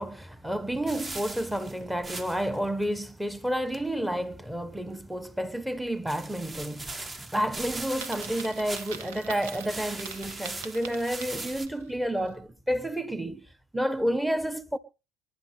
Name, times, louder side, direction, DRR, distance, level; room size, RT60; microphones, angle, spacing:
voice 1, 0.0-13.5 13.7-14.8, equal, 5° right, 1.4 m, -30 dB
sound 1, 0.9-2.6 2.8-2.9 3.3-3.4 3.7-3.8 6.1-9.2 9.4-11.7, right 2 dB, 25° right, 1.6 m, -40 dB
Coin (dropping), 8.0-11.8, right 7 dB, 85° right, 1.5 m, -43 dB
24.5 x 10.5 x 3.4 m
hypercardioid pair, 75°, 0 cm